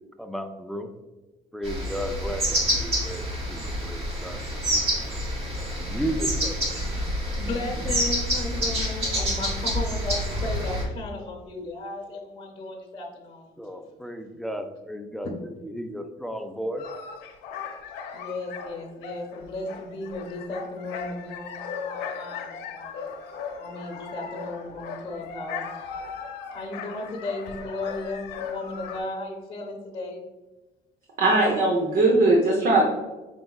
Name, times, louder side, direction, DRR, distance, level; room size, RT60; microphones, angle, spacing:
voice 1, 0.2-0.9 1.5-3.2 3.5-4.4 4.7-4.8 5.8-6.6 13.6-15.3 15.7-16.8, equal, ahead, 6 dB, 0.3 m, -34 dB
sound 1, 1.6-10.8, equal, 35° right, 1.3 m, -27 dB
voice 2, 6.7-7.1 7.4-13.5 15.2-15.3 18.1-23.1 23.6-26.0 26.5-30.2, left 2 dB, 35° left, -2 dB, 0.9 m, -35 dB
sound 2, 16.8-29.0, left 6 dB, 85° left, 0.6 m, -38 dB
voice 3, 31.2-32.8, right 2 dB, 55° right, -1 dB, 0.8 m, -19 dB
5.3 x 3.4 x 2.3 m, 1.1 s
cardioid pair, 110°, 17 cm